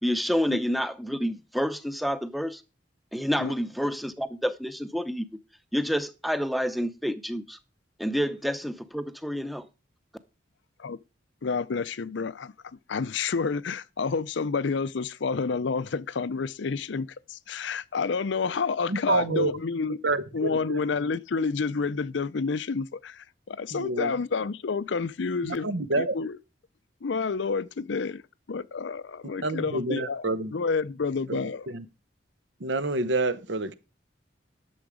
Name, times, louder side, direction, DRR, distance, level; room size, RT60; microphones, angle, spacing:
voice 1, 0.0-2.6 3.1-5.3 5.7-7.6 8.0-9.7, equal, ahead, 0.6 m, -28 dB
voice 2, 11.4-12.5 12.9-20.0 20.3-25.7 26.0-26.4 27.0-28.2 28.5-30.3 30.5-31.7, left 5 dB, 70° left, 0.5 m, -29 dB
voice 3, 18.9-19.5 20.0-20.8 23.7-24.1 25.4-26.1 29.4-30.5 31.3-31.4 31.7-31.8 32.6-33.7, right 2 dB, 70° right, 0.9 m, -28 dB
11.5 x 7.0 x 4.9 m
head